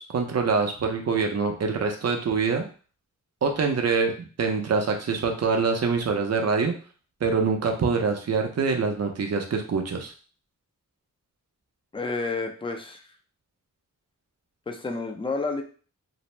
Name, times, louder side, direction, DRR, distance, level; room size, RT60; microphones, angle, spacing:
voice 1, 0.0-2.6 3.4-4.1 4.4-6.7 7.2-10.1, right 4 dB, 50° right, 3 dB, 0.6 m, -25 dB
voice 2, 11.9-13.0 14.7-15.6, left 3 dB, 15° left, 4 dB, 0.4 m, -30 dB
2.6 x 2.0 x 3.1 m, 0.39 s
wide cardioid pair, 100°, 32 cm